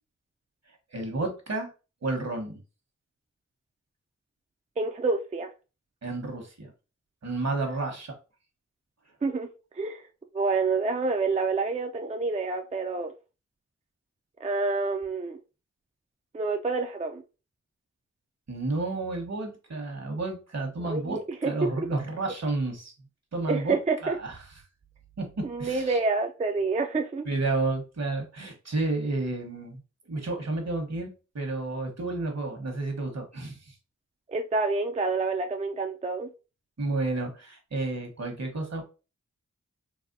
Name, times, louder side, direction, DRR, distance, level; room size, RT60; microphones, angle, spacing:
voice 1, 0.9-1.7 2.0-2.6 6.0-6.7 7.2-8.1 18.5-22.9 23.3-23.8 24.0-24.4 25.2-25.3 25.6-26.0 27.2-29.8 30.1-33.7 36.8-38.8, right 2 dB, 60° right, 1.2 m, -31 dB
voice 2, 4.8-5.5 9.2-9.5 9.8-10.0 10.3-13.1 14.4-15.4 16.3-17.2 20.8-21.5 21.8-21.9 23.5-24.2 25.4-27.3 34.3-36.3, right 3 dB, 25° right, 0.4 m, -28 dB
4.1 x 2.2 x 2.5 m
cardioid pair, 50°, 30 cm